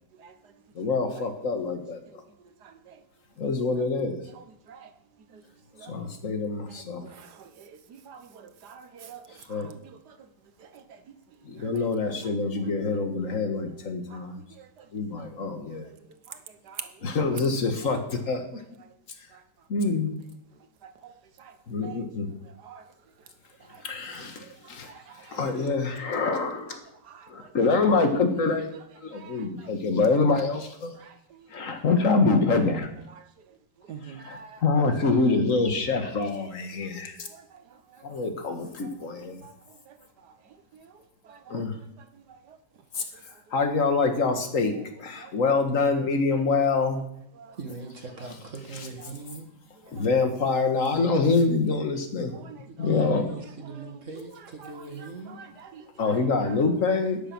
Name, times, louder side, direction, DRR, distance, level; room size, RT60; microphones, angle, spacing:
voice 1, 0.8-2.2 3.4-4.2 5.9-7.1 9.5-9.7 11.5-14.4 14.9-15.9 17.0-18.6 19.7-20.2 21.7-22.3 23.8-24.9 25.2-26.8 27.3-28.7 29.0-31.0 31.5-32.9 34.0-37.3 38.0-39.4 41.5-41.8 43.0-43.1 43.5-47.0 49.9-52.3 52.8-53.3 56.0-57.2, left 4 dB, 45° left, 1.9 m, -25 dB
voice 2, 8.6-9.2 9.6-9.8 11.6-11.8 16.7-16.9 21.8-22.0 22.6-22.8 29.2-29.4 33.9-34.6 39.4-39.5 41.3-41.4 47.4-47.5 52.3-52.6 53.7-53.9 54.6-54.7 55.3-56.1 56.6-56.7, right 7 dB, 60° right, 1.6 m, -43 dB
voice 3, 47.6-49.5 52.7-55.4, right 3 dB, 40° right, 2.1 m, -40 dB
13.0 x 9.9 x 6.0 m
omnidirectional pair, 2.1 m